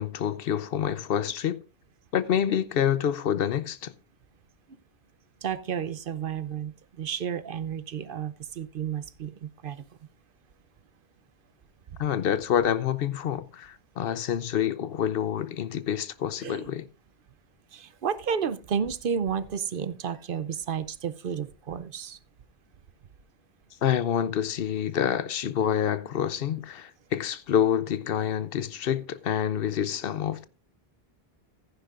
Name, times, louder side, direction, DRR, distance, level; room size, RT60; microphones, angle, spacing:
voice 1, 0.0-1.6 2.1-3.9 12.0-16.9 23.8-30.4, left 9 dB, 70° left, 0.8 m, -27 dB
voice 2, 5.4-9.8 16.4-16.7 17.7-22.2, right 7 dB, 60° right, 0.8 m, -32 dB
15.0 x 9.7 x 2.4 m
omnidirectional pair, 1.1 m